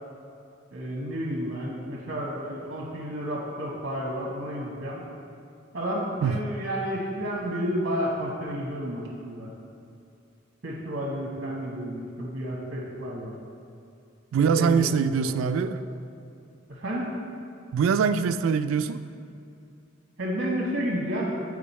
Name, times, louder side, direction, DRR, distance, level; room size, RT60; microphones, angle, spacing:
voice 1, 0.7-5.0 5.7-9.5 10.6-13.3 14.4-15.6 16.7-17.1 20.2-21.3, equal, 55° right, -3 dB, 1.1 m, -31 dB
voice 2, 14.3-15.8 17.7-19.0, right 6 dB, 80° right, 13 dB, 0.3 m, -23 dB
7.5 x 4.8 x 4.2 m, 2.6 s
head